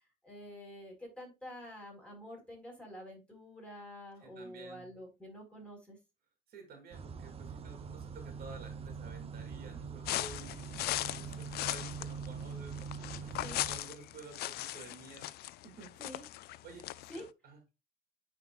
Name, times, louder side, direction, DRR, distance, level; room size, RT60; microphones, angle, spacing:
voice 1, 0.2-6.0 13.4-13.6 16.0-16.2 17.1-17.2, equal, 5° left, -1 dB, 4.4 m, -48 dB
voice 2, 4.2-5.0 6.5-15.9 16.6-16.9 17.1-17.6, right 4 dB, 65° right, 4 dB, 2.9 m, -52 dB
sound 1, 6.9-13.8, right 6 dB, 35° right, 0.9 m, -43 dB
sound 2, 10.0-17.2, left 15 dB, 70° left, 0.4 m, -38 dB
9.5 x 4.8 x 2.4 m, 0.25 s
cardioid pair, 110°, 17 cm